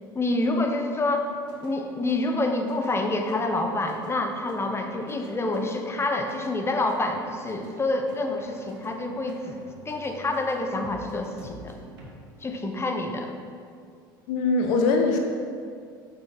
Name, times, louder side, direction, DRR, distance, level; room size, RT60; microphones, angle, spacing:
voice 1, 0.1-1.3 1.6-9.6 9.9-11.8 12.4-13.3, left 2 dB, 25° left, 4 dB, 0.8 m, -27 dB
sound 1, 1.3-12.1, right 2 dB, 80° right, 1.3 m, -47 dB
voice 2, 14.3-15.2, left 3 dB, 70° left, 3 dB, 0.7 m, -22 dB
6.8 x 5.7 x 4.4 m, 2.2 s
hypercardioid pair, 75°, 11 cm